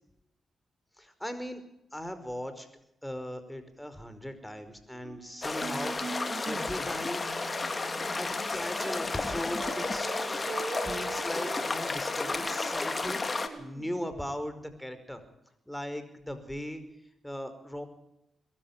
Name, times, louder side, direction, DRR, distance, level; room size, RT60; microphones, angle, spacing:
voice 1, 1.0-1.6 1.9-2.7 3.0-7.3 8.2-10.5 10.8-13.2 13.6-15.2 15.7-16.8 17.2-17.9, equal, 5° left, 10 dB, 5.2 m, -38 dB
sound 1, 4.9-14.1, right 4 dB, 60° right, 3.5 m, -42 dB
sound 2, 5.4-13.5, left 3 dB, 35° left, 2.8 m, -32 dB
22.5 x 13.5 x 9.0 m, 0.82 s
supercardioid pair, 45°, 0 cm